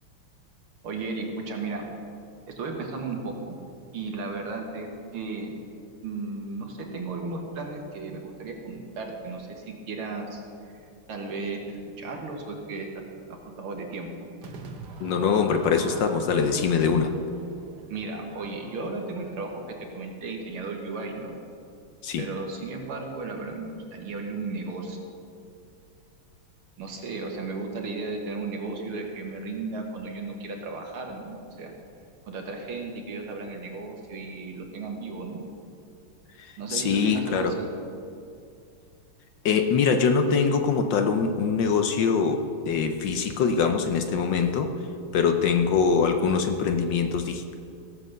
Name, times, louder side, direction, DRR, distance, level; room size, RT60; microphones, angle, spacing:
voice 1, 0.8-1.9 2.5-3.6 3.9-5.6 6.0-10.4 11.1-13.0 13.3-14.1 17.9-21.4 22.2-25.0 26.8-31.7 32.3-35.5 36.6-37.7, right 3 dB, 75° right, 1 dB, 2.4 m, -35 dB
Crowd / Fireworks, 14.4-19.7, right 4 dB, 55° right, 1.5 m, -45 dB
voice 2, 15.0-17.1 22.0-22.2 36.4-37.6 39.4-44.7 45.1-47.5, left 5 dB, 65° left, 6 dB, 1.3 m, -23 dB
16.5 x 7.5 x 6.6 m, 2.4 s
omnidirectional pair, 2.4 m